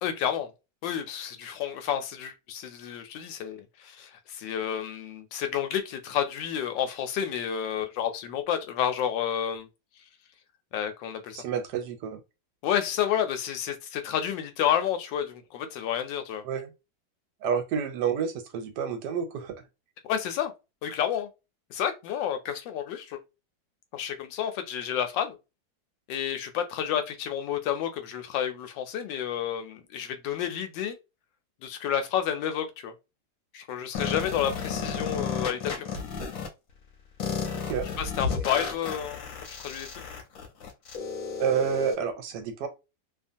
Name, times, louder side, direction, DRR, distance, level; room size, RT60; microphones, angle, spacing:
voice 1, 0.0-0.5 0.8-9.7 10.7-11.4 12.6-16.4 20.0-20.5 20.8-21.3 21.7-23.2 23.9-25.4 26.1-31.0 31.6-32.9 33.5-35.9 38.0-39.2 39.6-39.9, left 9 dB, 85° left, 1.3 m, -30 dB
voice 2, 11.3-12.2 16.4-16.7 17.4-19.6 37.7-37.9 41.4-42.7, right 7 dB, 75° right, 1.2 m, -29 dB
sound 1, 33.9-36.5 37.2-41.9, left 5 dB, 60° left, 1.0 m, -33 dB
2.8 x 2.4 x 2.5 m
omnidirectional pair, 2.0 m